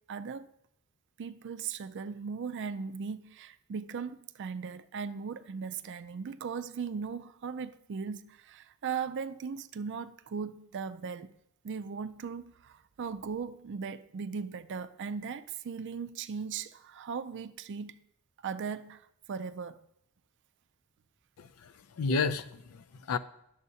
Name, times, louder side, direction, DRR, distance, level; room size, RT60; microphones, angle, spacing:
voice 1, 0.1-0.5 1.2-11.3 11.6-18.0 18.4-19.0 19.3-19.8, right 6 dB, 55° right, 0.4 m, -38 dB
voice 2, 21.4-23.2, left 4 dB, 80° left, 0.5 m, -32 dB
11.0 x 7.2 x 2.7 m
head